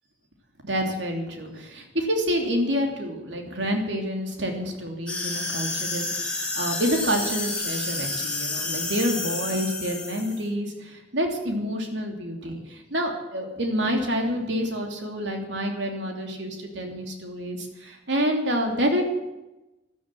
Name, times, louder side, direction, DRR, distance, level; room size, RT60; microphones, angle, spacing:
voice 1, 0.6-19.0, equal, 70° right, 3 dB, 3.2 m, -28 dB
sound 1, 5.1-10.4, left 3 dB, 5° left, 4.0 m, -30 dB
14.0 x 12.5 x 7.7 m, 0.98 s
head